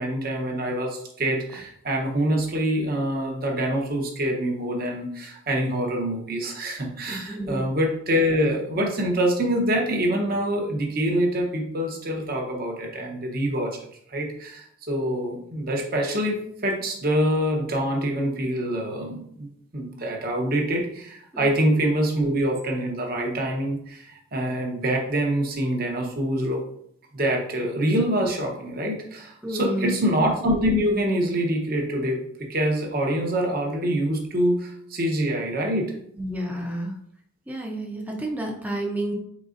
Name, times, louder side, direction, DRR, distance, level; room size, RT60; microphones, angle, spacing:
voice 1, 0.0-13.8 14.1-26.6 27.1-35.9, equal, 45° right, 1 dB, 0.8 m, -25 dB
voice 2, 7.1-7.6 21.3-21.5 29.4-30.0 36.2-36.9 37.5-39.1, right 1 dB, 5° right, -1 dB, 0.6 m, -30 dB
4.1 x 3.9 x 2.5 m, 0.68 s
head